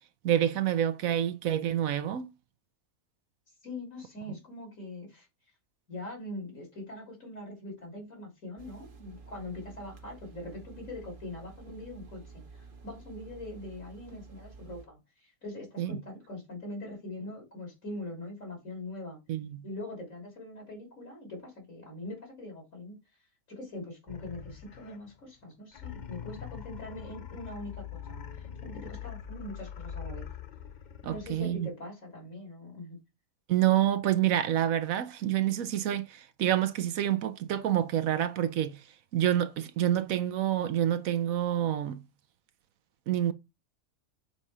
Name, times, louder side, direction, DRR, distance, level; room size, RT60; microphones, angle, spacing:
voice 1, 0.2-2.3 15.8-16.0 19.3-19.6 31.0-31.7 33.5-38.8 39.1-42.0 43.1-43.3, right 11 dB, 80° right, 1.1 m, -27 dB
voice 2, 3.6-5.3 5.9-19.2 19.6-23.0 23.5-28.2 28.6-30.3 31.1-33.0, left 1 dB, 70° left, 3.8 m, -42 dB
sound 1, 8.6-14.9, right 4 dB, 40° right, 1.1 m, -50 dB
sound 2, 24.1-25.2 25.7-31.7, left 9 dB, 50° left, 0.5 m, -43 dB
6.8 x 4.2 x 4.8 m
omnidirectional pair, 1.4 m